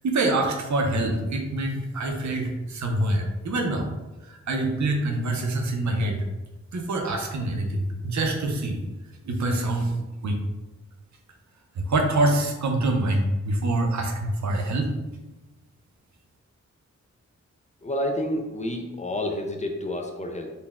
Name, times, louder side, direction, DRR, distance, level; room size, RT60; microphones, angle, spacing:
voice 1, 0.0-3.9 4.3-6.2 6.7-8.8 9.3-9.9 10.2-10.4 11.8-14.9, right 2 dB, 75° right, 3 dB, 0.6 m, -25 dB
voice 2, 17.8-20.5, left 1 dB, 25° left, 3 dB, 0.3 m, -29 dB
4.0 x 2.2 x 3.5 m, 1.1 s
wide cardioid pair, 145°, 29 cm